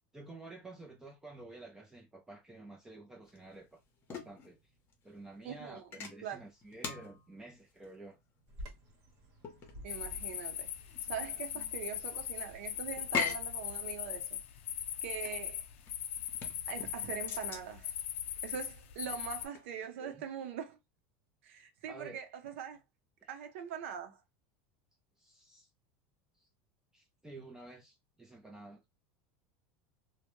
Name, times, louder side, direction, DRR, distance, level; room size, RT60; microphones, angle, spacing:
voice 1, 0.1-3.8 4.1-4.6 5.0-8.2 20.0-20.2 21.9-22.2 23.2-23.3 25.2-25.7 26.4-26.5 26.9-28.9, right 2 dB, 10° right, 0.4 m, -51 dB
sound 1, 3.2-19.8, left 6 dB, 35° left, 0.8 m, -44 dB
voice 2, 5.4-5.8 6.2-6.4 9.8-10.7 11.1-14.4 15.0-15.6 16.7-17.9 18.4-20.8 21.4-22.8 23.3-24.2, right 8 dB, 85° right, 0.6 m, -42 dB
Bird vocalization bird call bird song, 8.5-14.2, equal, 55° right, 1.0 m, -53 dB
sound 2, 9.9-19.5, left 10 dB, 90° left, 0.3 m, -40 dB
2.1 x 2.1 x 2.9 m
supercardioid pair, 135°, 7 cm